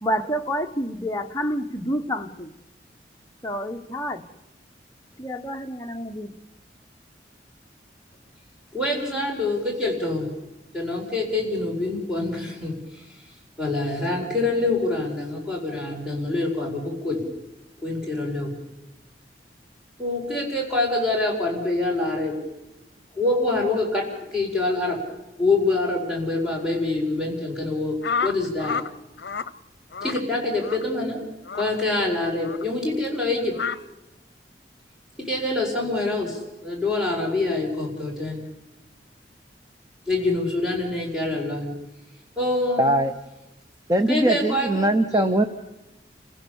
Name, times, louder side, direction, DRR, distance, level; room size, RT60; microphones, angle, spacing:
voice 1, 0.0-2.5 3.4-4.2 5.2-6.4, equal, 20° left, 3 dB, 1.0 m, -28 dB
voice 2, 8.7-10.3 10.7-13.1 13.6-17.2 17.8-18.5 20.0-22.4 23.1-25.0 25.4-28.8 30.0-31.2 31.5-33.6 35.2-38.4 40.1-41.7 42.4-42.9 44.1-44.8 45.1-45.3, left 2 dB, 5° right, -2 dB, 4.7 m, -25 dB
sound 1, 28.0-28.9 29.2-29.5 29.9-30.2 30.6-30.8 31.4-31.7 32.4-32.6 33.5-33.8, left 6 dB, 75° left, 0.7 m, -29 dB
voice 3, 42.8-43.1 43.9-45.4, right 1 dB, 20° right, 8 dB, 0.8 m, -21 dB
29.5 x 16.0 x 7.1 m, 1.0 s
head